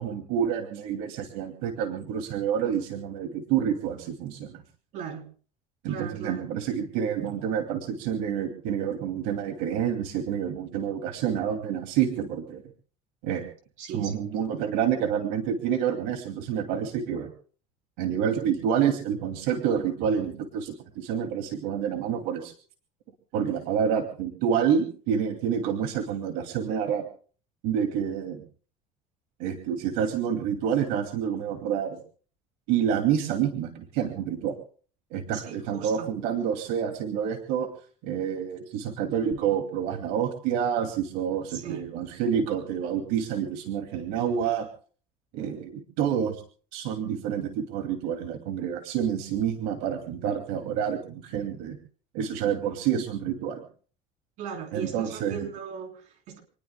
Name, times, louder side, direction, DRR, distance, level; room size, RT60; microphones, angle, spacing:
voice 1, 0.0-4.6 5.8-12.6 13.2-13.5 13.9-17.3 18.0-22.5 23.3-27.1 27.6-28.4 29.4-32.0 32.7-34.5 35.1-37.7 38.0-44.7 45.3-46.4 46.7-51.8 52.1-53.6 54.7-55.5, right 8 dB, 80° right, 2.5 m, -28 dB
voice 2, 4.9-5.3 5.9-6.5 13.8-14.3 35.3-36.1 41.5-41.9 54.4-56.4, right 7 dB, 55° right, 3.6 m, -38 dB
27.0 x 20.0 x 2.2 m
cardioid pair, 175°, 15 cm